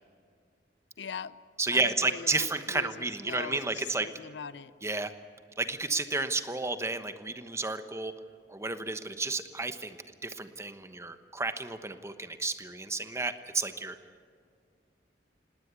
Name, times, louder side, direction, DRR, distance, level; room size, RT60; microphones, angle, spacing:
voice 1, 1.0-1.3 1.7-4.7, left 6 dB, 70° left, 17 dB, 0.6 m, -41 dB
voice 2, 1.6-4.1 4.8-5.1 5.6-8.1 8.5-10.0 10.2-14.0, right 3 dB, 15° right, 9 dB, 1.1 m, -32 dB
20.0 x 18.0 x 8.3 m, 2.2 s
head